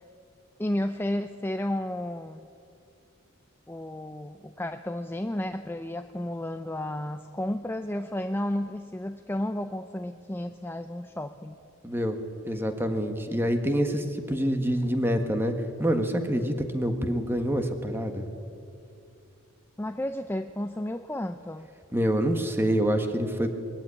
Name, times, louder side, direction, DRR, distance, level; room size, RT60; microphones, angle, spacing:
voice 1, 0.6-2.5 3.7-11.5 19.8-21.7, left 1 dB, 10° left, 8 dB, 0.5 m, -32 dB
voice 2, 11.8-12.2 12.4-15.5 15.8-18.3 21.9-23.5, equal, 10° right, 6 dB, 1.6 m, -26 dB
21.5 x 15.0 x 9.9 m, 2.6 s
head